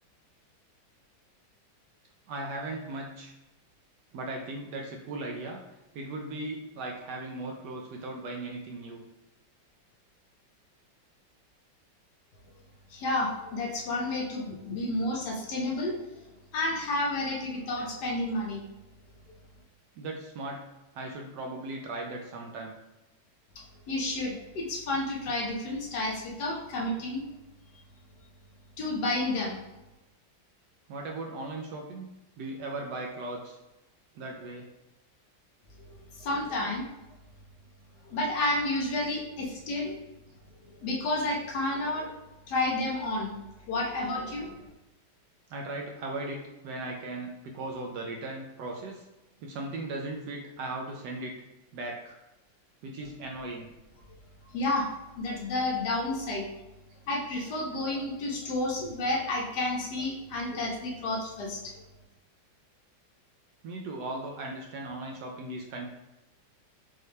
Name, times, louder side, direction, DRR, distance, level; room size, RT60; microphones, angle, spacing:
voice 1, 2.3-3.3 4.1-5.6 5.9-9.0 17.8-17.9 20.0-20.6 20.9-22.7 30.9-32.1 32.4-33.6 34.2-34.6 36.3-36.7 39.7-39.9 43.7-44.5 45.5-46.4 46.6-49.0 49.4-51.3 51.7-52.2 52.8-53.7 63.6-65.9, right 2 dB, 75° right, 0 dB, 1.0 m, -38 dB
voice 2, 12.9-15.9 16.5-18.6 23.6-27.2 28.8-29.6 36.2-36.8 38.1-39.9 40.8-42.1 42.5-43.4 43.7-44.5 54.5-54.9 55.2-56.5 57.1-61.8, left 2 dB, 65° left, -1 dB, 1.2 m, -30 dB
5.5 x 2.2 x 3.2 m, 0.98 s
omnidirectional pair, 2.1 m